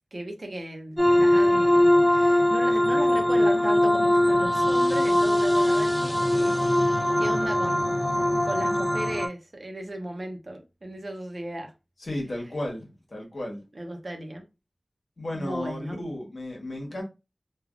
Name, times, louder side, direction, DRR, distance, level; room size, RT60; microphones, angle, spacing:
voice 1, 0.1-6.6 6.8-7.9 8.5-11.7 13.7-14.4 15.3-16.1, right 1 dB, 50° right, 0.6 m, -36 dB
sound 1, 1.0-9.3, left 1 dB, ahead, 0.6 m, -21 dB
voice 2, 12.0-13.6 15.2-17.0, left 1 dB, 65° left, 1.1 m, -34 dB
3.3 x 2.3 x 2.4 m
wide cardioid pair, 75°, 0 cm